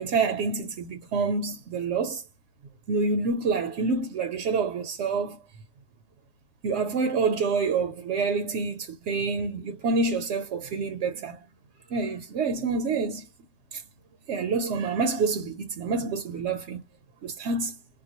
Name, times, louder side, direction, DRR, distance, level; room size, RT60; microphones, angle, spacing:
voice 1, 0.0-2.2 2.9-5.4 6.6-11.4 11.9-13.3 13.7-13.8 14.3-16.8 17.2-17.7, right 4 dB, 65° right, 0.9 m, -27 dB
3.8 x 2.2 x 2.8 m
omnidirectional pair, 1.4 m